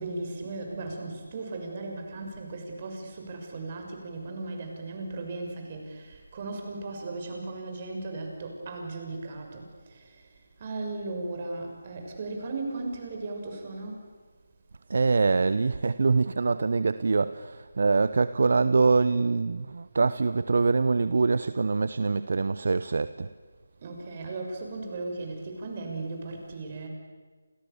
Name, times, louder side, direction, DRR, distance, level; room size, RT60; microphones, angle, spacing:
voice 1, 0.0-14.1 23.8-26.9, right 2 dB, 35° right, 2 dB, 6.7 m, -37 dB
voice 2, 14.9-23.3, right 4 dB, 60° right, 14 dB, 0.9 m, -24 dB
29.5 x 28.5 x 7.1 m, 1.5 s
figure-of-eight pair, 160°, 0 cm